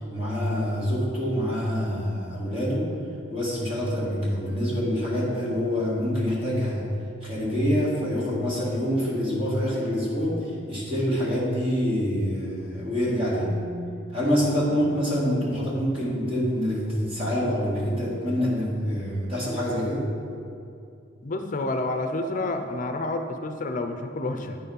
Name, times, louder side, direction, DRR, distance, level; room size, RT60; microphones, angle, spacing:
voice 1, 0.1-2.9 3.3-6.9 7.2-13.7 14.1-20.1, equal, 30° right, -5 dB, 1.8 m, -26 dB
voice 2, 21.2-24.6, left 2 dB, 40° left, 6 dB, 0.5 m, -29 dB
9.0 x 4.2 x 5.4 m, 2.5 s
head